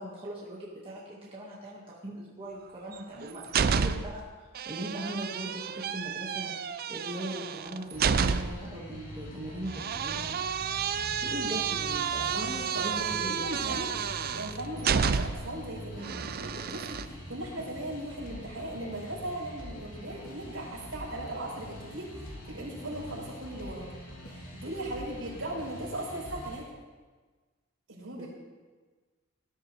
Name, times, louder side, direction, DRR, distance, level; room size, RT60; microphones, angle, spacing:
voice 1, 0.0-6.6 6.9-10.3 11.2-13.5 28.2-28.3, right 1 dB, 25° right, -6 dB, 1.9 m, -40 dB
sound 1, 2.9-4.2 4.6-8.7 9.7-15.6 16.0-17.1, right 6 dB, 45° right, 0.5 m, -30 dB
sound 2, 7.9-26.6, left 1 dB, 85° left, 3.1 m, -44 dB
voice 2, 12.2-13.9 14.3-23.9 24.5-26.7 27.9-28.3, right 1 dB, 65° right, -6 dB, 5.5 m, -38 dB
19.5 x 12.5 x 3.4 m, 1.4 s
head